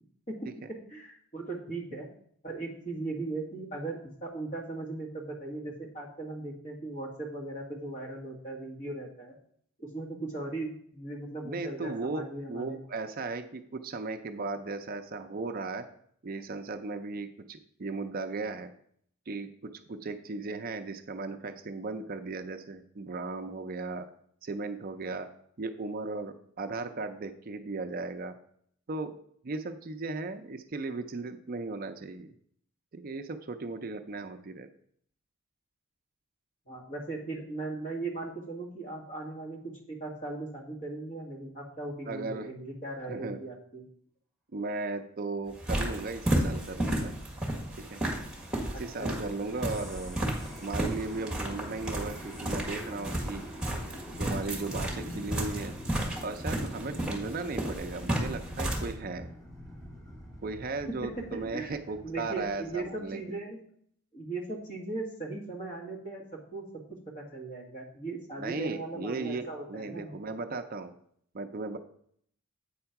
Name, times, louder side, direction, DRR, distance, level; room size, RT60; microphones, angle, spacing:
voice 1, 0.3-2.1 2.4-9.4 9.8-12.8 36.7-43.8 48.7-49.1 60.9-61.7 62.0-63.6 64.1-66.7 67.2-70.1, right 2 dB, 35° left, 0 dB, 1.8 m, -38 dB
voice 2, 11.4-15.8 16.2-18.7 19.3-24.1 24.4-25.3 25.6-28.3 28.9-29.2 29.4-32.3 32.9-34.7 42.1-42.5 43.1-43.4 44.5-47.1 47.9-48.0 48.8-50.2 50.6-53.4 54.2-55.7 56.2-59.3 60.4-63.2 68.4-70.9 71.3-71.8, right 3 dB, 40° right, 8 dB, 0.5 m, -36 dB
sound 1, 45.5-58.9, right 1 dB, 5° right, 1.7 m, -33 dB
sound 2, 46.8-63.1, equal, 15° left, 1.9 m, -45 dB
8.6 x 4.5 x 5.8 m, 0.65 s
head